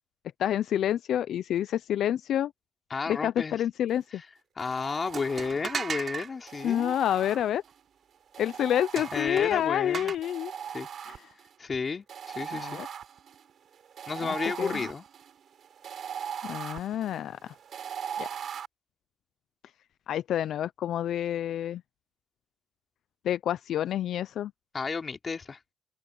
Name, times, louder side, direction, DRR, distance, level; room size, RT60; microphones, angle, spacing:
voice 1, 0.4-2.5 3.1-4.2 6.6-7.6 8.4-10.5 11.1-11.2 12.5-12.9 14.6-14.9 16.4-17.5 18.2-18.3 20.1-21.8 23.2-24.5, left 10 dB, 70° left, 0.5 m, -28 dB
voice 2, 2.9-3.6 4.1-4.3 4.6-6.9 9.1-10.1 10.7-10.9 11.6-12.8 14.1-15.0 24.7-25.6, left 4 dB, 35° left, 3.0 m, -32 dB
sound 1, 4.6-5.9 6.5-7.8 8.3-9.7 10.2-11.5 12.1-18.7, right 8 dB, 60° right, 3.9 m, -40 dB
sound 2, 5.1-6.3 9.0-10.2, right 6 dB, 45° right, 6.7 m, -35 dB
open air
cardioid pair, 90°, 0 cm